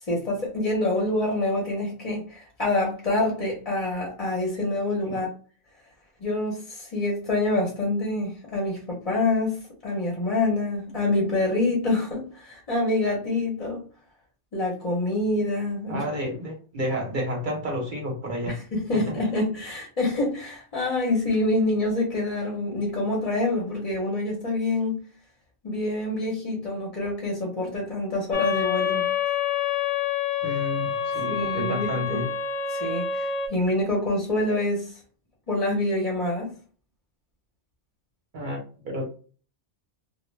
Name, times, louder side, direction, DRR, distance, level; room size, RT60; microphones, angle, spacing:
voice 1, 0.1-5.3 6.2-9.6 9.8-13.8 14.5-16.0 18.5-25.0 25.6-29.0 31.3-32.2 32.7-34.9 35.5-36.5, left 2 dB, 40° left, 0.6 m, -26 dB
voice 2, 15.9-18.6 18.9-19.1 30.4-32.3 38.3-38.6 38.8-39.0, equal, 50° right, 0.7 m, -30 dB
sound 1, 28.3-33.5, left 8 dB, 85° left, 1.0 m, -27 dB
2.1 x 2.0 x 3.0 m
omnidirectional pair, 1.2 m